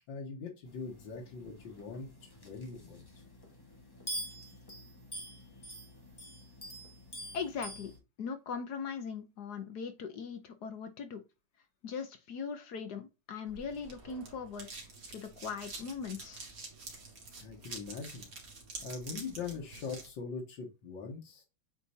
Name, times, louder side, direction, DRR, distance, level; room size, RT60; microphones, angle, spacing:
voice 1, 0.1-3.0 17.4-18.3 18.8-21.4, left 5 dB, 90° left, 2.0 m, -42 dB
sound 1, 0.6-8.0, equal, 15° left, 1.6 m, -46 dB
voice 2, 7.3-7.9 8.2-11.2 11.8-14.7 15.1-16.4, left 6 dB, 65° left, 1.3 m, -40 dB
sound 2, 13.5-20.1, right 3 dB, 50° right, 2.3 m, -47 dB
8.3 x 4.2 x 2.8 m
omnidirectional pair, 2.0 m